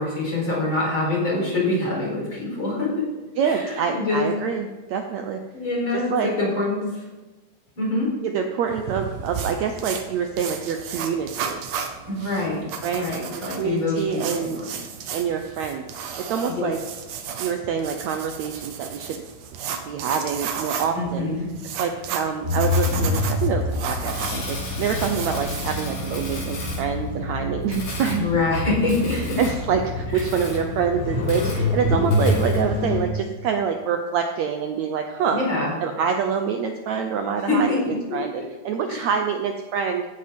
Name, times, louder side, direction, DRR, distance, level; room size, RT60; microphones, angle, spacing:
voice 1, 0.0-3.1 3.4-4.3 5.5-7.0 7.8-8.1 12.1-12.6 12.9-14.6 16.5-16.7 20.9-21.5 28.2-29.4 30.1-30.2 35.3-35.7 37.4-38.2 38.9-39.0, left 2 dB, 30° left, -3 dB, 4.9 m, -25 dB
voice 2, 3.4-5.4 5.9-6.3 8.2-11.6 12.8-13.1 13.6-14.6 15.1-16.8 17.4-19.2 19.9-21.3 21.8-28.3 29.1-35.4 35.8-37.8 38.1-40.0, right 6 dB, 85° right, 5 dB, 1.5 m, -26 dB
sound 1, 8.7-25.8, right 7 dB, 65° right, 2.4 m, -34 dB
sound 2, 22.4-33.0, left 2 dB, 75° left, 7.8 m, -26 dB
16.0 x 9.4 x 5.3 m, 1.2 s
omnidirectional pair, 4.3 m